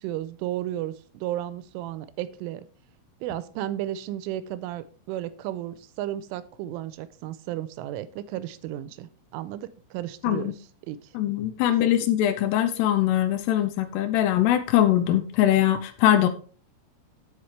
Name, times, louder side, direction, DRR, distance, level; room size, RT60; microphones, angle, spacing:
voice 1, 0.0-2.7 3.2-10.5 10.9-11.0 11.6-11.7, right 13 dB, 85° right, 14 dB, 3.0 m, -33 dB
voice 2, 11.1-16.3, left 12 dB, 90° left, 8 dB, 2.4 m, -22 dB
16.5 x 5.7 x 3.2 m, 0.40 s
omnidirectional pair, 5.8 m